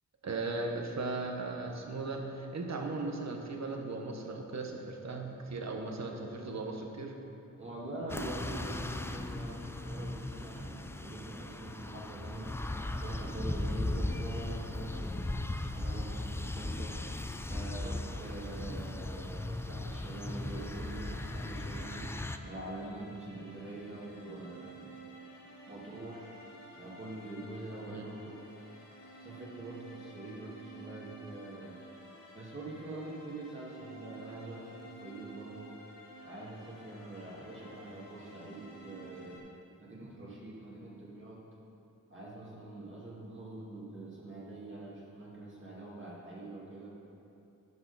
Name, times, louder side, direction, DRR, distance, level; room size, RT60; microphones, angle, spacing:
voice 1, 0.2-7.1 27.9-28.1, right 3 dB, 50° right, 2 dB, 1.1 m, -37 dB
voice 2, 7.6-12.6 13.0-15.3 15.7-17.0 17.4-22.1 22.4-24.9 25.7-26.3 26.8-28.4 29.2-31.8 32.3-35.7 36.2-39.5 39.8-41.4 42.1-46.9, right 2 dB, 35° right, -5 dB, 2.0 m, -44 dB
sound 1, 8.1-22.4, left 2 dB, 10° left, 0.3 m, -37 dB
sound 2, 20.2-39.4, right 2 dB, 85° left, 1.8 m, -52 dB
11.0 x 6.2 x 4.1 m, 2.7 s
wide cardioid pair, 85°, 34 cm